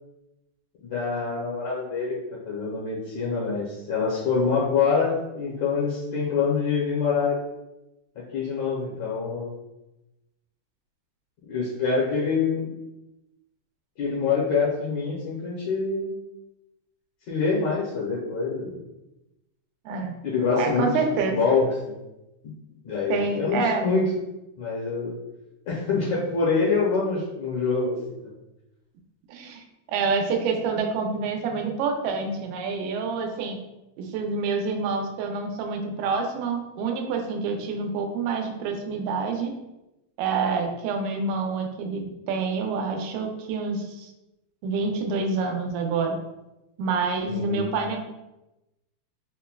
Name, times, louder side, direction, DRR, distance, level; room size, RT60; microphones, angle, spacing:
voice 1, 0.8-2.2 2.4-7.4 8.3-9.5 11.5-12.7 14.0-16.1 17.3-18.8 20.2-20.9 21.3-22.0 22.4-22.5 22.8-24.0 24.6-25.2 25.7-28.0 28.2-28.3 47.3-47.7, left 5 dB, 75° left, -6 dB, 1.8 m, -25 dB
voice 2, 20.6-21.4 23.1-23.9 29.3-29.6 29.9-33.6 34.0-39.5 40.2-44.1 44.6-46.2 46.8-48.0, right 4 dB, 90° right, 2 dB, 2.1 m, -27 dB
5.6 x 2.1 x 2.2 m, 0.95 s
omnidirectional pair, 3.6 m